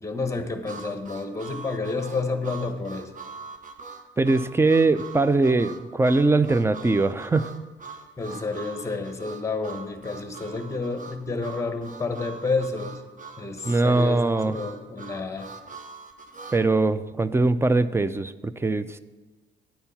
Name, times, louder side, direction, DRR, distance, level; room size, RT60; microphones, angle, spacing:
voice 1, 0.0-3.1 8.2-13.0 13.4-14.2 14.5-15.5, left 3 dB, 15° left, 7 dB, 1.1 m, -30 dB
Harmonica, 0.6-16.6, right 4 dB, 40° right, 0.8 m, -42 dB
voice 2, 4.2-7.5 13.6-14.6 16.5-19.0, right 3 dB, 15° right, 14 dB, 0.4 m, -21 dB
10.5 x 4.4 x 7.0 m, 1.2 s
cardioid pair, 90°, 20 cm